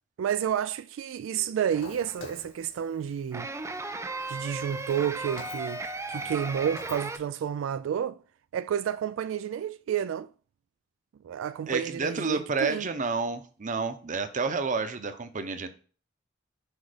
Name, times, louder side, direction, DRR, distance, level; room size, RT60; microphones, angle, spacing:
voice 1, 0.2-3.5 4.3-8.2 8.5-10.3 11.2-12.9, right 9 dB, 85° right, 0.3 m, -30 dB
sound 1, 1.4-2.2 3.3-7.2, right 2 dB, 15° right, 0.4 m, -36 dB
Walk footsteps, 1.8-7.2, left 4 dB, 85° left, 1.6 m, -50 dB
voice 2, 11.7-15.7, right 4 dB, 40° right, 0.8 m, -30 dB
6.3 x 4.9 x 5.0 m
head